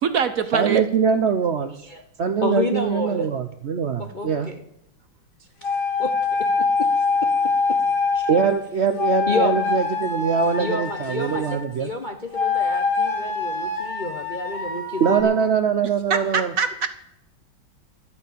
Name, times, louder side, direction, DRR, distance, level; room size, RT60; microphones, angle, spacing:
voice 1, 0.0-0.8 15.8-16.9, right 6 dB, 55° right, 11 dB, 1.1 m, -23 dB
voice 2, 0.5-1.7 2.2-4.5 8.3-11.9 15.0-16.5, right 6 dB, 75° right, 8 dB, 0.6 m, -22 dB
voice 3, 2.4-3.3 4.0-4.6 6.0-6.9 7.2-7.8 8.1-8.3 9.3-9.7 10.6-15.3, left 3 dB, 35° left, 4 dB, 0.7 m, -30 dB
sound 1, 5.6-8.6 9.0-11.6 12.3-15.2, left 4 dB, 55° left, 2.7 m, -24 dB
12.0 x 8.6 x 8.6 m, 0.80 s
omnidirectional pair, 2.1 m